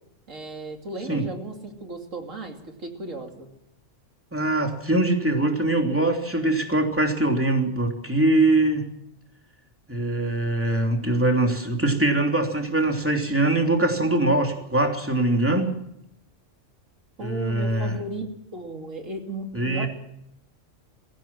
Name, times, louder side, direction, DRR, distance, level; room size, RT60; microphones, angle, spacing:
voice 1, 0.3-3.5 17.2-18.3 18.5-19.9, right 2 dB, 90° right, 3 dB, 3.2 m, -35 dB
voice 2, 4.3-8.9 9.9-15.7 17.2-18.0 19.5-19.9, right 2 dB, 10° right, 2 dB, 3.2 m, -22 dB
22.5 x 16.0 x 7.4 m, 0.78 s
omnidirectional pair, 1.3 m